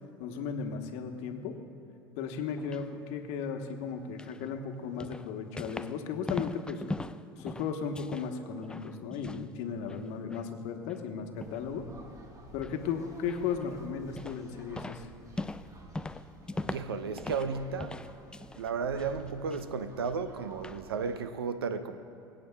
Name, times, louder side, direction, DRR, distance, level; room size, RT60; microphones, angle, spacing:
voice 1, 0.2-1.5 2.2-6.8 7.4-11.8 12.5-15.1, left 6 dB, 60° left, 1.2 m, -35 dB
sound 1, 2.4-2.8 4.2-4.4 5.0-6.0 6.3-8.3 8.6-9.5 9.8-10.5 10.9-11.0 11.4-11.7 12.6-12.8 13.3-13.7 14.2-14.5 14.8-17.5 17.8-18.7 19.0-19.6 20.1-20.2 20.6-20.8, left 2 dB, 5° left, 0.3 m, -40 dB
sound 2, 11.4-21.2, right 1 dB, 25° right, 1.5 m, -52 dB
voice 2, 16.7-18.0 18.6-22.0, right 5 dB, 85° right, 0.7 m, -34 dB
23.5 x 8.7 x 2.3 m
hypercardioid pair, 75°, 12 cm